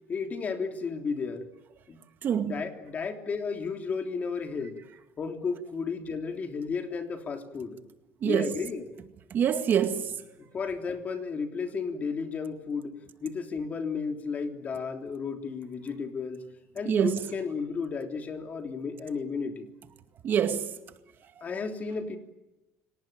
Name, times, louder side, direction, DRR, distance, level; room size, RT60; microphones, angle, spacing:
voice 1, 0.1-1.5 1.9-2.0 2.4-4.8 5.2-7.8 8.2-8.9 10.5-16.4 16.7-19.7 21.4-22.2, left 5 dB, 35° left, 3.3 m, -33 dB
voice 2, 2.2-2.6 8.2-8.6 9.3-10.2 16.9-17.2 20.2-20.7, right 8 dB, 45° right, 2.1 m, -26 dB
29.5 x 18.5 x 9.0 m
cardioid pair, 115°, 5 cm